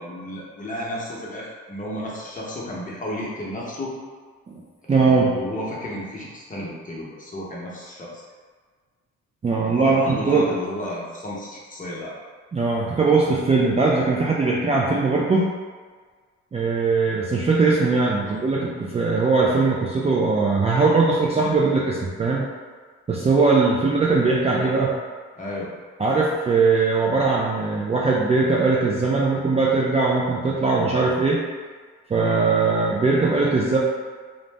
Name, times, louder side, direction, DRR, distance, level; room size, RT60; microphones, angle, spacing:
voice 1, 0.0-3.9 4.9-8.2 9.8-12.1 18.2-18.3 25.4-25.7, left 1 dB, 25° left, -5 dB, 0.8 m, -32 dB
voice 2, 4.9-5.3 9.4-10.5 12.5-15.5 16.5-22.5 23.1-24.9 26.0-31.4 32.1-33.8, right 3 dB, 20° right, -5 dB, 0.3 m, -20 dB
2.6 x 2.0 x 3.3 m, 1.5 s
cardioid pair, 90°, 30 cm